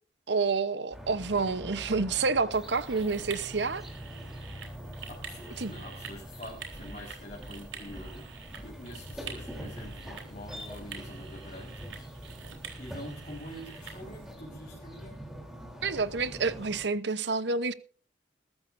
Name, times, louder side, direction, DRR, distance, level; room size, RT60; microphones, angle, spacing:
voice 1, 0.3-3.8 5.6-5.7 15.8-17.7, right 4 dB, 65° right, 0.9 m, -28 dB
sound 1, 0.9-16.8, equal, ahead, 3.3 m, -44 dB
sound 2, 2.5-14.3, right 5 dB, 85° right, 3.7 m, -47 dB
voice 2, 5.1-12.1 12.8-15.2, left 1 dB, 40° left, 4.4 m, -46 dB
21.0 x 13.5 x 2.6 m
head